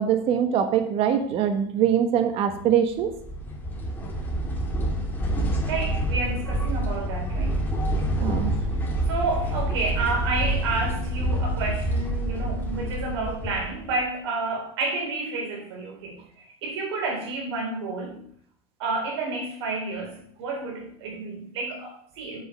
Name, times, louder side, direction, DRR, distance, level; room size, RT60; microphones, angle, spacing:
voice 1, 0.0-3.1 8.2-8.5, right 8 dB, 45° right, 7 dB, 1.2 m, -23 dB
sound 1, 3.0-14.0, right 1 dB, 15° left, 2.2 m, -27 dB
voice 2, 5.6-7.6 9.1-18.2 18.8-22.4, right 3 dB, 85° right, 0 dB, 3.9 m, -30 dB
7.9 x 5.3 x 6.3 m, 0.62 s
supercardioid pair, 120°, 14 cm